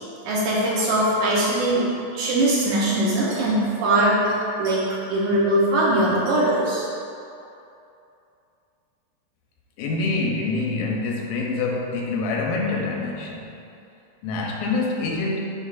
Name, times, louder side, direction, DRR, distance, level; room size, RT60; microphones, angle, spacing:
voice 1, 0.3-1.9 2.1-6.8, right 1 dB, 70° right, -7 dB, 2.1 m, -21 dB
voice 2, 9.8-13.5 14.2-15.4, left 3 dB, 80° left, 0 dB, 2.3 m, -26 dB
8.3 x 5.0 x 2.4 m, 2.7 s
omnidirectional pair, 4.0 m